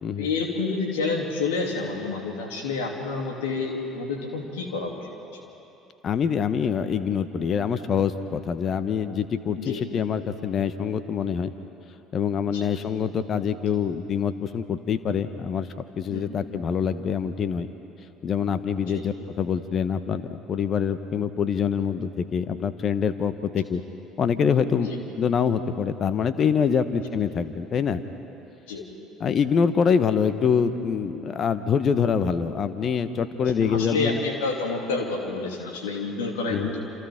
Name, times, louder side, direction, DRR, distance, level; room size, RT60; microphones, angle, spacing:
voice 1, 0.2-4.9 5.3-5.4 9.6-9.8 12.5-12.7 16.1-16.2 18.9-19.0 24.8-25.0 28.7-28.8 33.5-36.8, left 4 dB, 70° left, 1 dB, 2.9 m, -29 dB
voice 2, 6.0-11.5 12.1-15.7 16.0-17.7 18.2-23.8 24.2-24.9 25.2-28.0 29.2-34.2 36.5-36.7, left 7 dB, 40° left, 12 dB, 1.2 m, -25 dB
28.5 x 27.5 x 3.8 m, 2.9 s
figure-of-eight pair, 55°, 0 cm